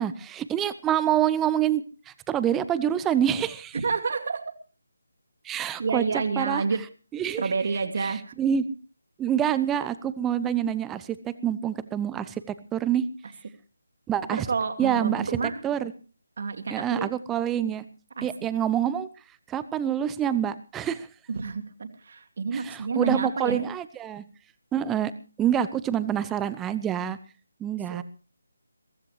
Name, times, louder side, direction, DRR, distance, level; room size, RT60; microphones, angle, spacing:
voice 1, 0.0-3.8 5.4-6.0 6.4-6.6 7.1-7.4 8.0-8.7 9.2-13.0 14.1-14.5 14.8-15.9 16.7-17.8 18.2-19.1 19.5-21.1 22.5-24.2 24.7-25.1 25.4-27.2 27.6-28.0, right 10 dB, 10° right, 14 dB, 0.8 m, -26 dB
voice 2, 3.7-4.5 5.8-6.8 7.4-8.3 14.3-15.6 16.4-17.1 18.2-18.5 21.3-23.6 27.9-28.0, right 5 dB, 45° right, 7 dB, 2.4 m, -29 dB
23.0 x 16.0 x 3.3 m, 0.37 s
figure-of-eight pair, 150°, 0 cm